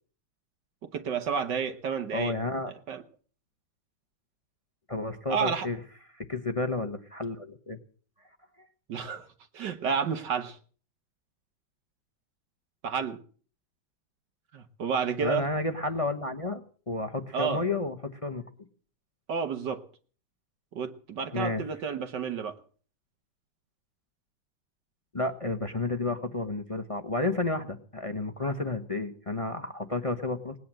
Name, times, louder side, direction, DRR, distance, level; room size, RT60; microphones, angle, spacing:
voice 1, 0.9-2.3 2.9-3.0 5.3-5.7 8.9-9.3 9.5-10.6 12.8-13.2 14.5-15.4 17.3-17.7 19.3-19.8 20.7-22.6, right 6 dB, 65° right, 1.8 m, -30 dB
voice 2, 2.1-2.7 4.9-5.8 6.1-7.8 15.2-16.6 16.9-18.4 21.3-21.6 25.1-30.6, left 2 dB, 25° left, 0.8 m, -31 dB
19.5 x 9.4 x 7.5 m
omnidirectional pair, 2.1 m